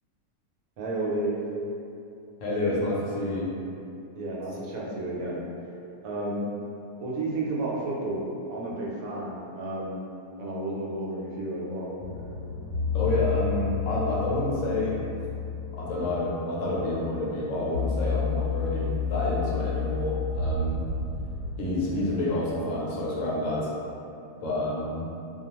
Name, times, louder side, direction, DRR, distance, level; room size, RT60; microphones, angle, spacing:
voice 1, 0.8-1.4 4.2-5.4 6.0-6.5 7.0-10.0 10.4-11.9, right 2 dB, 75° right, -5 dB, 1.0 m, -31 dB
voice 2, 2.4-3.5 12.9-15.0 15.8-20.9 21.6-23.7 24.4-25.1, left 1 dB, 70° left, -5 dB, 0.8 m, -28 dB
sound 1, 12.0-21.5, left 5 dB, 85° left, 1.1 m, -31 dB
2.3 x 2.3 x 2.8 m, 2.6 s
omnidirectional pair, 1.5 m